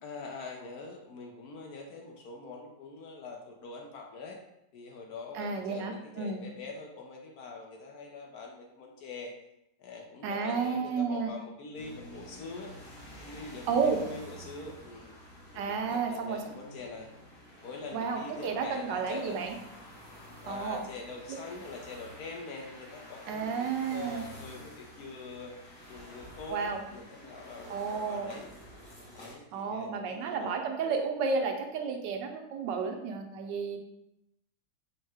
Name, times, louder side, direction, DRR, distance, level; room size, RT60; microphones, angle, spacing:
voice 1, 0.0-4.4 4.7-9.3 9.8-12.7 13.2-15.1 15.5-17.1 17.6-19.4 20.4-25.5 25.9-28.5 29.1-30.6, left 3 dB, 70° left, 1 dB, 1.0 m, -44 dB
voice 2, 5.3-6.4 10.2-11.3 13.7-14.0 15.5-16.4 17.9-19.5 20.5-20.8 21.3-21.4 23.3-24.2 26.5-26.8 27.7-28.3 29.5-33.8, right 5 dB, 85° right, 4 dB, 1.3 m, -32 dB
sound 1, 11.7-29.3, equal, 25° left, 0.6 m, -49 dB
4.6 x 2.1 x 4.7 m, 0.84 s
omnidirectional pair, 1.9 m